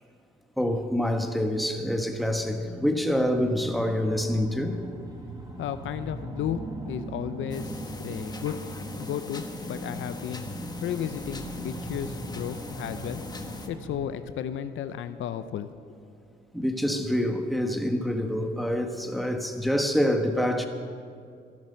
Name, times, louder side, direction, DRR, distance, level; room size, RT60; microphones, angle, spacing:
voice 1, 0.6-4.8 16.5-20.7, equal, ahead, 1.3 m, -26 dB
sound 1, 2.2-14.1, right 1 dB, 20° right, 1.9 m, -40 dB
voice 2, 5.6-8.6 9.0-10.4 10.8-13.2 13.7-15.7, left 9 dB, 75° left, 0.7 m, -33 dB
sound 2, 7.5-13.7, left 2 dB, 20° left, 1.3 m, -40 dB
14.0 x 12.0 x 6.6 m
cardioid pair, 90°, 20 cm